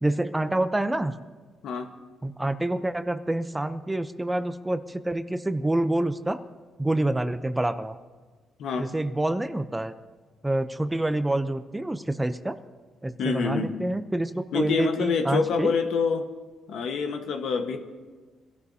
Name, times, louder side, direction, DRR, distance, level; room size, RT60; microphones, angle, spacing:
voice 1, 0.0-1.1 2.2-6.4 6.8-8.0 8.8-9.9 10.4-12.6 13.0-15.7, right 1 dB, 10° right, 11 dB, 0.6 m, -27 dB
voice 2, 8.6-8.9 13.2-13.7 14.5-16.3 16.7-17.8, left 5 dB, 75° left, 5 dB, 1.3 m, -26 dB
23.0 x 12.5 x 2.8 m, 1.4 s
cardioid pair, 90°, 0 cm